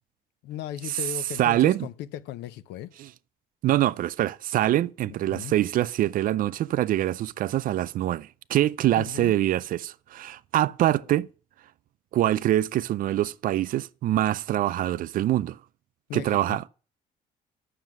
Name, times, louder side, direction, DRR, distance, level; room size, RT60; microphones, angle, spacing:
voice 1, 0.4-2.9 5.1-5.6 9.0-9.3 16.1-16.6, left 11 dB, 85° left, 0.6 m, -37 dB
voice 2, 1.4-1.9 3.0-3.1 3.6-11.3 12.1-15.6 16.1-16.7, right 13 dB, 55° right, 0.4 m, -24 dB
7.6 x 6.6 x 5.9 m
cardioid pair, 110°, 17 cm